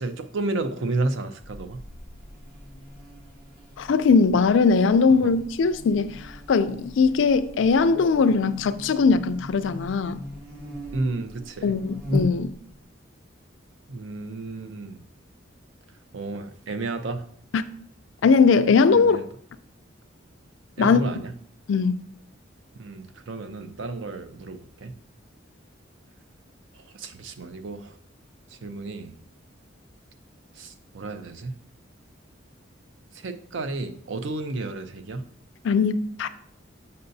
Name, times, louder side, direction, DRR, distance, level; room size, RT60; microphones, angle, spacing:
voice 1, 0.0-1.8 5.2-5.3 10.9-11.8 13.9-15.0 16.1-17.3 18.9-19.3 20.8-21.3 22.8-24.9 26.7-28.0 28.5-29.1 30.5-31.6 33.1-35.3, right 2 dB, 75° right, 0.5 m, -32 dB
Buzz, 1.4-12.8, left 1 dB, 55° right, 1.3 m, -37 dB
voice 2, 3.8-10.2 11.6-12.5 17.5-17.6 18.2-19.2 20.8-21.0 21.7-22.0 35.6-36.3, left 5 dB, 75° left, 0.4 m, -20 dB
6.8 x 5.4 x 2.7 m
head